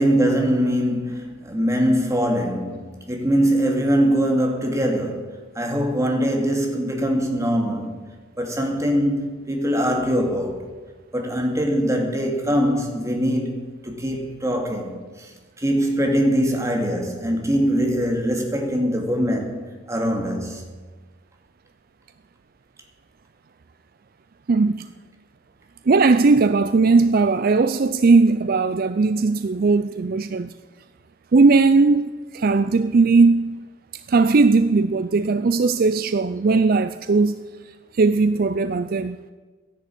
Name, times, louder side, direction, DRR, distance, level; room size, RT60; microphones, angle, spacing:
voice 1, 0.0-8.0 8.4-10.6 11.1-19.6 19.9-20.6, equal, 15° right, 2.4 m, -22 dB
voice 2, 24.5-24.9 25.9-30.5 31.3-33.6 34.1-37.4 37.9-39.2, right 3 dB, 45° right, 0.4 m, -18 dB
13.5 x 11.0 x 8.5 m
head